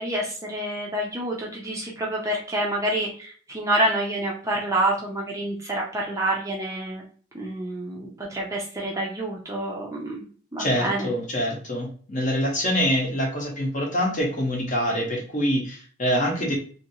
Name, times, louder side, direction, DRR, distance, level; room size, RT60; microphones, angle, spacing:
voice 1, 0.0-7.0 7.3-10.2 10.5-11.1, right 1 dB, 15° right, -2 dB, 0.5 m, -27 dB
voice 2, 10.6-16.6, equal, 35° left, -1 dB, 0.9 m, -25 dB
2.8 x 2.7 x 2.7 m, 0.43 s
head